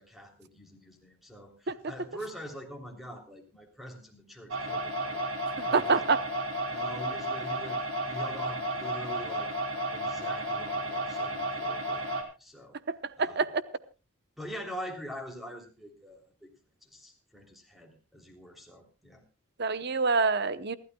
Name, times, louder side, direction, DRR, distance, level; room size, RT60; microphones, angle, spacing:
voice 1, 0.0-6.0 6.6-9.5 9.9-12.8 13.2-13.5 14.4-16.5 16.8-19.2, equal, ahead, 3 dB, 3.3 m, -44 dB
sound 1, 4.5-12.2, right 1 dB, 70° right, 3.5 m, -33 dB
voice 2, 5.6-6.2 12.9-13.5 19.6-20.8, right 4 dB, 50° right, 14 dB, 0.9 m, -26 dB
28.0 x 12.5 x 2.3 m, 0.31 s
head